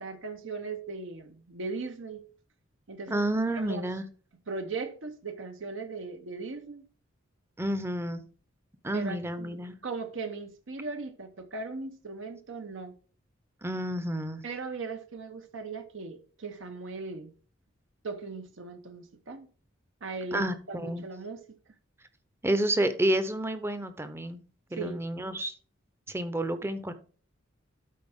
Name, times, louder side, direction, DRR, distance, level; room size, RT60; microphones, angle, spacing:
voice 1, 0.0-2.2 2.9-3.3 3.6-3.8 4.5-6.9 8.9-9.6 9.8-13.0 14.4-17.3 18.0-19.5 20.0-21.4 24.8-25.0, right 4 dB, 70° right, 0.9 m, -38 dB
voice 2, 3.1-4.0 7.6-8.2 8.8-9.7 13.6-14.4 20.3-21.1 22.4-24.4 24.7-25.5 26.1-26.9, right 1 dB, 10° right, 0.7 m, -30 dB
12.0 x 4.5 x 3.6 m
head